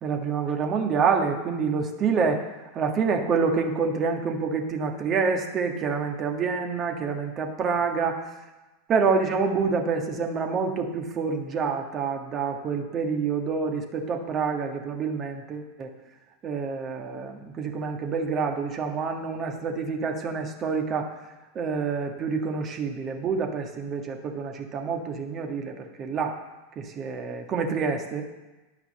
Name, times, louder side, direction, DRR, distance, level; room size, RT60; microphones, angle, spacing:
voice 1, 0.0-2.5 2.7-8.2 8.9-15.9 16.4-21.1 21.5-26.4 26.7-28.2, right 5 dB, 35° right, 3 dB, 1.6 m, -27 dB
11.0 x 5.8 x 6.7 m, 1.1 s
figure-of-eight pair, 90°, 0 cm